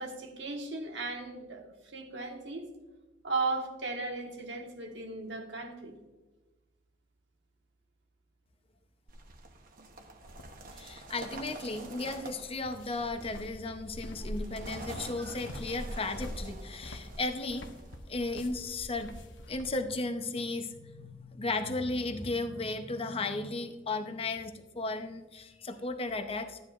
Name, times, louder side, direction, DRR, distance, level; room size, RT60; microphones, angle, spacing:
voice 1, 0.0-2.7 3.2-5.9 15.2-15.4, right 3 dB, 65° right, 3 dB, 1.4 m, -36 dB
sound 1, 9.1-18.0, right 2 dB, 50° right, 1.0 m, -48 dB
sound 2, 10.2-19.7, equal, 75° left, 1.0 m, -45 dB
voice 2, 10.8-17.7 18.1-19.1 19.5-26.6, left 2 dB, 30° left, 7 dB, 0.7 m, -35 dB
13.0 x 9.5 x 2.5 m, 1.1 s
head